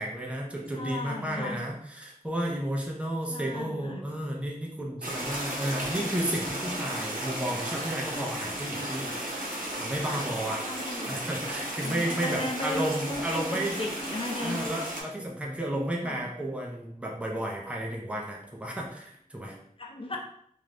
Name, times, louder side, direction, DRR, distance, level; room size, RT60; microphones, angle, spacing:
voice 1, 0.0-9.2 9.8-10.6 11.1-13.7 14.4-19.6, right 1 dB, 10° right, -1 dB, 0.6 m, -32 dB
voice 2, 0.7-1.6 3.3-4.0 10.6-11.2 11.8-12.8 13.1-14.6 16.0-16.3 19.8-20.2, left 2 dB, 40° left, -1 dB, 0.6 m, -36 dB
sound 1, 5.0-15.0, right 1 dB, 75° right, 0.8 m, -34 dB
2.6 x 2.2 x 3.3 m, 0.68 s
wide cardioid pair, 45°, 14 cm